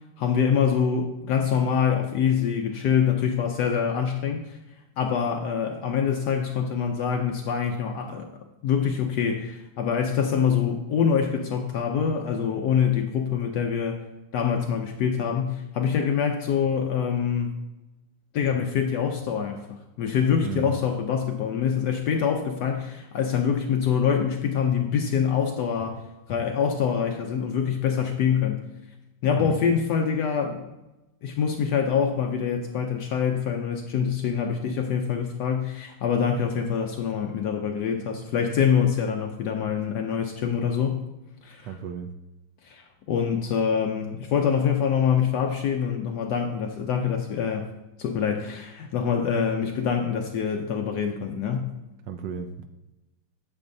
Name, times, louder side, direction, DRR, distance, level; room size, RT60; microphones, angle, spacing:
voice 1, 0.2-4.6 5.0-8.3 8.6-14.0 14.3-17.5 18.3-28.6 29.2-30.7 31.2-41.0 41.4-41.8 42.6-47.7 48.0-51.7, left 7 dB, 75° left, 4 dB, 1.0 m, -25 dB
voice 2, 20.4-20.8 29.4-29.7 41.6-42.1 52.1-52.6, right 8 dB, 75° right, 7 dB, 1.1 m, -34 dB
8.5 x 7.6 x 2.6 m, 1.0 s
omnidirectional pair, 2.3 m